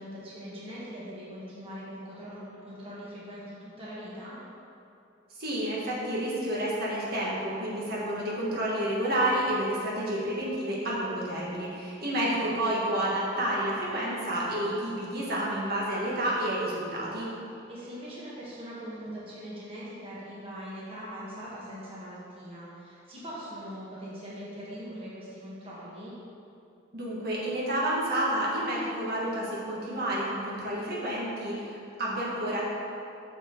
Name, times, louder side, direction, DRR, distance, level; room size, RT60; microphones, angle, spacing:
voice 1, 0.0-4.4 12.0-12.6 17.5-26.1, equal, 30° right, -8 dB, 1.4 m, -42 dB
voice 2, 5.4-17.3 26.9-32.6, right 1 dB, 55° right, -6 dB, 1.6 m, -30 dB
7.0 x 5.9 x 4.5 m, 2.6 s
head